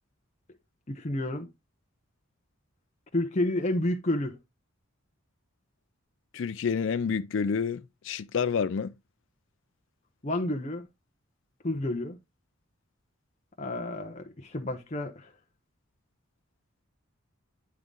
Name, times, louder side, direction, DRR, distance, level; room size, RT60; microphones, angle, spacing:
voice 1, 0.9-1.5 3.1-4.4 10.2-10.9 11.6-12.2 13.6-15.3, left 1 dB, 35° left, 0.8 m, -30 dB
voice 2, 6.3-8.9, left 6 dB, 65° left, 0.4 m, -29 dB
9.6 x 3.7 x 3.8 m
head